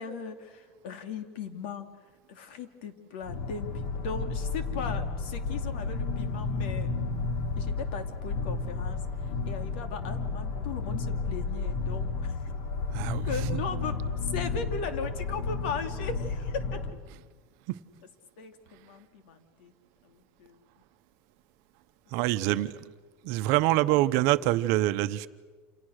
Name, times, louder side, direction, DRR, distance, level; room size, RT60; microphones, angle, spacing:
voice 1, 0.0-1.9 2.3-6.9 7.6-9.0 9.5-12.4 13.2-13.9 14.2-16.6 18.4-19.7 20.0-20.6 22.2-22.7, left 5 dB, 80° left, 2.8 m, -38 dB
sound 1, 3.2-16.9, left 4 dB, 65° left, 2.8 m, -32 dB
voice 2, 12.9-13.6 17.7-17.8 22.1-22.8 23.2-25.3, right 16 dB, 55° right, 0.9 m, -26 dB
29.0 x 28.0 x 6.5 m
cardioid pair, 175°, 6 cm